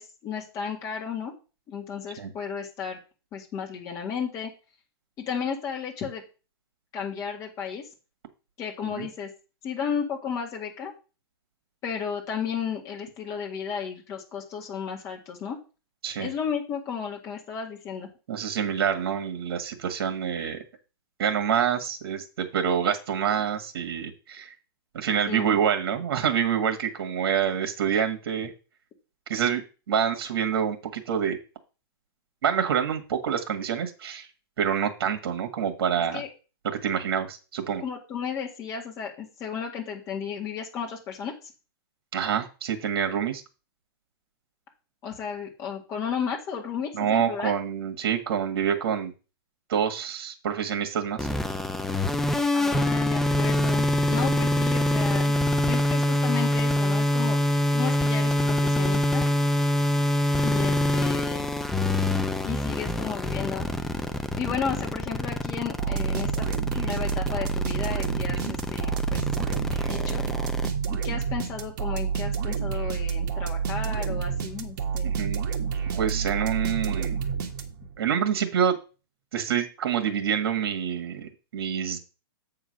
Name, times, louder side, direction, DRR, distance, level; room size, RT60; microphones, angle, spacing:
voice 1, 0.0-1.3 1.7-3.0 3.3-4.5 5.2-6.2 6.9-7.8 8.6-9.3 9.6-10.9 11.8-15.6 16.2-18.1 25.3-25.5 36.1-36.3 37.8-41.3 45.0-47.5 52.5-55.3 55.6-59.3 60.4-61.5 62.4-63.7 64.4-66.5 66.7-69.2 69.8-70.2 70.9-75.1, left 7 dB, 25° left, 0 dB, 2.0 m, -33 dB
voice 2, 18.3-20.6 21.2-24.5 24.9-28.5 29.3-31.4 32.4-34.3 34.6-36.2 36.6-37.8 42.1-43.4 46.9-49.1 49.7-51.2 68.5-68.6 75.0-75.4 76.0-77.2 78.0-78.8 79.3-82.0, right 8 dB, 65° right, 6 dB, 1.6 m, -27 dB
sound 1, 51.2-70.7, left 1 dB, 5° left, 0.4 m, -25 dB
sound 2, 65.8-78.0, right 6 dB, 50° right, 1.4 m, -29 dB
8.0 x 3.8 x 6.3 m, 0.33 s
hypercardioid pair, 155°, 13 cm